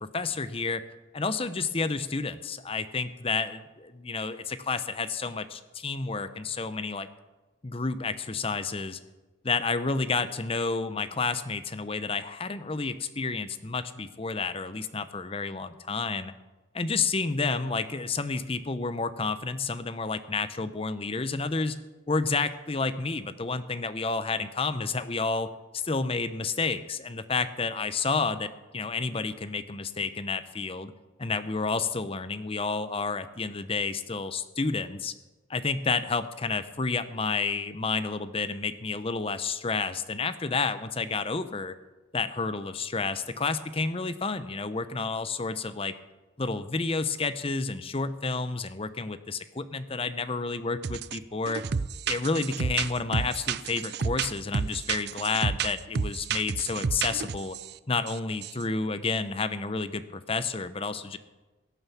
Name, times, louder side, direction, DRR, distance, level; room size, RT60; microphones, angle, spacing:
voice 1, 0.1-0.8 1.1-7.1 7.6-9.0 9.4-16.3 16.7-21.8 22.1-25.5 25.8-30.9 31.2-35.1 35.5-41.8 42.1-45.9 46.4-51.6 52.1-57.6 57.9-61.2, left 4 dB, 30° left, 12 dB, 0.7 m, -30 dB
sound 1, 50.8-51.2 51.5-57.7 58.1-58.2 58.4-58.6, right 6 dB, 55° right, 0.5 m, -31 dB
17.0 x 9.4 x 7.2 m, 1.2 s
head